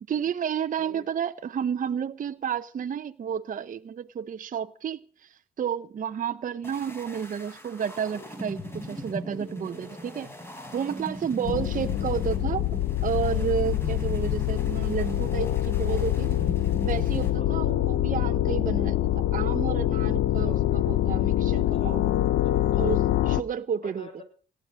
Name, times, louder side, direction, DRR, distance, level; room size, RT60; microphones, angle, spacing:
voice 1, 0.1-10.3 10.7-12.7 13.0-16.4 16.8-22.1 22.8-24.1, right 8 dB, 40° right, 0.7 m, -31 dB
sound 1, 6.6-17.3, equal, 10° left, 5.0 m, -39 dB
voice 2, 9.9-10.3 16.8-16.9 17.4-17.6 20.4-20.6 21.6-22.9 23.8-24.2, left 3 dB, 30° left, 6.5 m, -48 dB
sound 2, 11.4-23.4, left 13 dB, 70° left, 0.7 m, -25 dB
18.0 x 11.0 x 6.3 m
cardioid pair, 90°, 20 cm